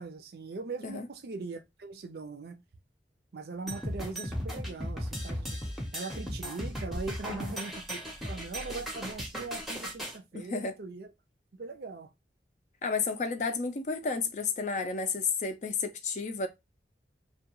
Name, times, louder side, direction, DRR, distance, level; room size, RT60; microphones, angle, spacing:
voice 1, 0.0-2.6 3.3-5.6 5.9-11.1 11.6-12.1, right 3 dB, 60° right, 0.5 m, -40 dB
sound 1, 3.7-10.2, equal, ahead, 0.6 m, -36 dB
voice 2, 10.3-10.8 12.8-16.5, left 4 dB, 40° left, 0.4 m, -32 dB
2.3 x 2.2 x 2.9 m
head